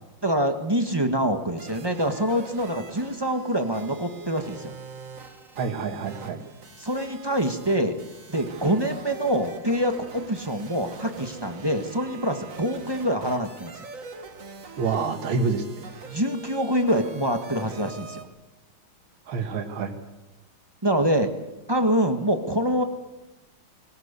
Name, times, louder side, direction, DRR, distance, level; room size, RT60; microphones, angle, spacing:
voice 1, 0.2-4.7 6.8-7.9 8.3-13.9 16.0-18.3 20.8-21.3 21.7-22.8, equal, 15° right, 6 dB, 1.1 m, -25 dB
sound 1, 1.6-18.2, right 4 dB, 40° right, 1.8 m, -43 dB
voice 2, 5.6-6.4 14.8-15.6 19.3-20.0, right 5 dB, 70° right, 3 dB, 2.4 m, -27 dB
19.5 x 17.5 x 8.2 m, 1.1 s
omnidirectional pair, 2.3 m